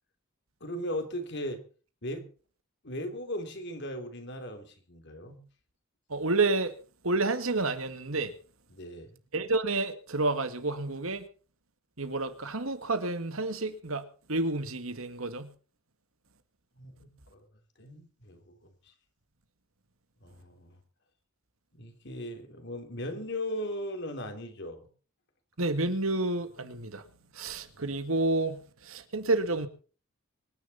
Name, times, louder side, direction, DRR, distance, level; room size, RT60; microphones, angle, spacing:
voice 1, 0.6-1.6 2.0-2.3 2.8-5.4 8.7-9.2 16.8-17.4 17.8-18.6 18.8-18.9 20.2-20.7 21.7-24.9, left 1 dB, 55° left, 3.3 m, -38 dB
voice 2, 6.1-6.7 7.0-8.3 9.3-11.3 12.0-15.5 25.6-27.0 27.3-29.7, right 2 dB, 75° right, 2.0 m, -30 dB
24.5 x 10.5 x 4.2 m
head